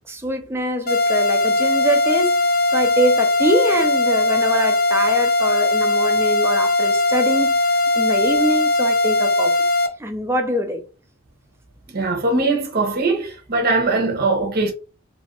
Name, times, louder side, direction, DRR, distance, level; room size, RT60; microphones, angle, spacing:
voice 1, 0.1-2.4 2.7-7.6 8.0-9.6 10.0-10.8, equal, 10° right, 0.5 m, -23 dB
sound 1, 0.9-9.9, left 2 dB, 45° left, 0.6 m, -19 dB
voice 2, 11.9-14.7, right 3 dB, 45° right, 0.7 m, -21 dB
2.7 x 2.4 x 2.9 m
head